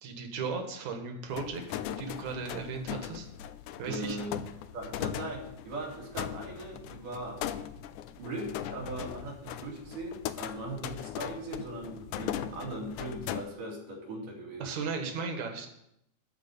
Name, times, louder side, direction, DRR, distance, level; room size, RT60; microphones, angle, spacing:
voice 1, 0.0-1.6 2.0-3.3 3.8-4.2 14.6-15.7, right 4 dB, 65° right, 4 dB, 2.8 m, -36 dB
sound 1, 1.3-13.4, left 11 dB, 85° left, 2.1 m, -39 dB
voice 2, 3.8-4.4 4.7-7.4 8.1-14.8, right 1 dB, 90° right, -3 dB, 4.3 m, -39 dB
13.0 x 4.7 x 8.6 m, 0.79 s
omnidirectional pair, 3.6 m